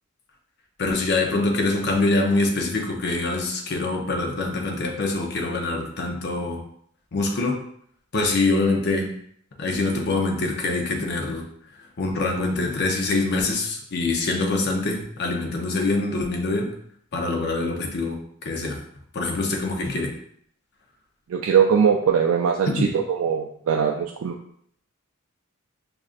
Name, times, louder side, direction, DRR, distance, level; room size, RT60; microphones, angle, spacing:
voice 1, 0.8-6.6 7.1-7.6 8.1-9.1 9.6-11.4 12.0-16.7 17.1-18.8 19.1-20.1 22.8-22.9, left 2 dB, 50° left, 1 dB, 0.6 m, -24 dB
voice 2, 21.3-24.3, right 7 dB, 70° right, 1 dB, 0.3 m, -21 dB
5.1 x 2.5 x 2.5 m, 0.67 s
head